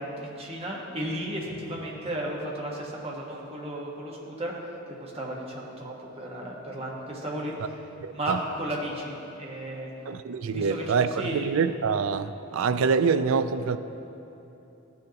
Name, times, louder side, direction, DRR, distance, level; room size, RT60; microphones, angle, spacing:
voice 1, 0.0-4.5 4.9-7.8 8.1-9.9 10.5-10.8 11.2-11.5, right 1 dB, 30° right, -3 dB, 1.3 m, -34 dB
voice 2, 8.0-8.4 10.1-13.8, right 5 dB, 75° right, 12 dB, 0.4 m, -25 dB
14.5 x 6.4 x 2.9 m, 2.9 s
head